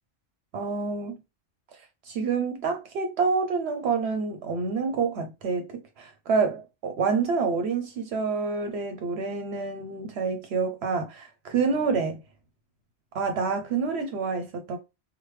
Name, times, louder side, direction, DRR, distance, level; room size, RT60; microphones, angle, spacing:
voice 1, 0.5-1.2 2.0-12.2 13.1-14.8, right 5 dB, 70° right, 0.8 m, -27 dB
3.1 x 2.2 x 3.1 m
omnidirectional pair, 1.2 m